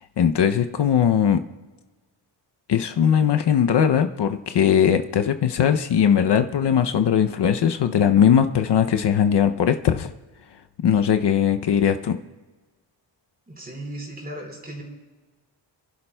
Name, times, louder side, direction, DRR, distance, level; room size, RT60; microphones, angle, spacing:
voice 1, 0.2-1.4 2.7-10.1 10.8-12.2, left 8 dB, 65° left, 8 dB, 0.6 m, -19 dB
voice 2, 13.5-14.8, right 1 dB, 20° right, -2 dB, 3.4 m, -36 dB
28.0 x 11.5 x 2.2 m, 1.3 s
wide cardioid pair, 140°, 45 cm